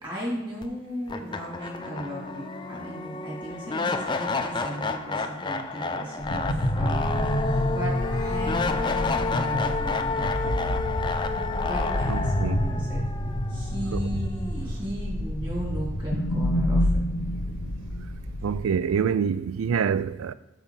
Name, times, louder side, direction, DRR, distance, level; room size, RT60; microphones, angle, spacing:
voice 1, 0.0-10.7 11.7-13.0 13.5-17.0, right 1 dB, 25° right, 2.8 m, -36 dB
sound 1, 0.6-0.7 1.1-14.1, left 4 dB, 20° left, 0.4 m, -30 dB
sound 2, 6.2-18.6, left 1 dB, 70° left, 0.9 m, -28 dB
voice 2, 12.1-12.7 13.9-14.0 18.4-20.3, right 7 dB, 90° right, 0.4 m, -26 dB
7.0 x 4.7 x 5.7 m
head